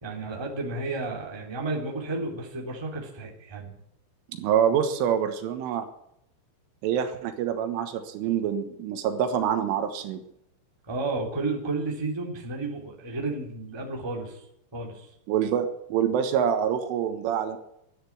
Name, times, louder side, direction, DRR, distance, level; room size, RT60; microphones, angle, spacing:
voice 1, 0.0-3.8 10.8-14.4 14.7-15.1, right 3 dB, 10° right, -1 dB, 2.0 m, -32 dB
voice 2, 4.3-5.9 6.8-10.2 15.3-17.6, right 8 dB, 80° right, 8 dB, 3.7 m, -26 dB
13.0 x 9.6 x 9.8 m, 0.77 s
omnidirectional pair, 5.9 m